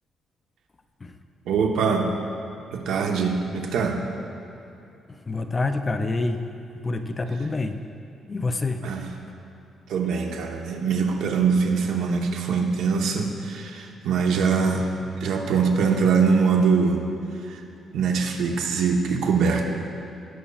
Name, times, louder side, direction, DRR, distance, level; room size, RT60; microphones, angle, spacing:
voice 1, 1.4-2.1 2.7-4.0 8.8-9.1 9.9-14.9 15.2-17.0 17.4-17.6 17.9-19.6, right 5 dB, 85° right, 2 dB, 0.9 m, -23 dB
voice 2, 5.1-6.4 6.8-7.8 8.3-8.9, left 3 dB, 20° left, 7 dB, 0.3 m, -27 dB
17.5 x 6.8 x 2.4 m, 2.8 s
cardioid pair, 175°, 0 cm